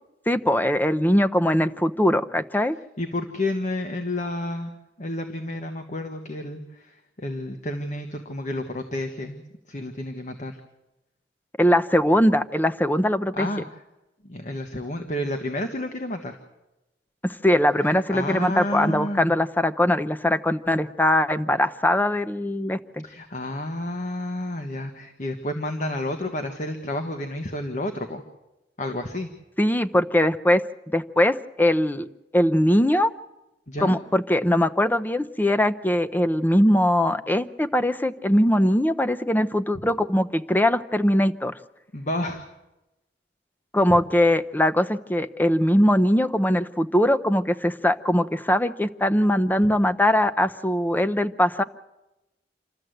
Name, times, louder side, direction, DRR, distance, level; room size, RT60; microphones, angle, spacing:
voice 1, 0.3-2.8 11.6-13.5 17.2-23.0 29.6-30.6 30.9-32.1 32.3-33.1 33.8-41.5 43.7-51.6, left 1 dB, 10° left, 12 dB, 0.6 m, -21 dB
voice 2, 3.0-10.6 13.4-13.8 14.2-16.4 17.8-19.3 23.0-28.2 28.8-29.3 33.7-34.0 41.9-42.5, left 1 dB, 45° left, 5 dB, 1.3 m, -30 dB
27.5 x 13.0 x 7.9 m, 0.99 s
head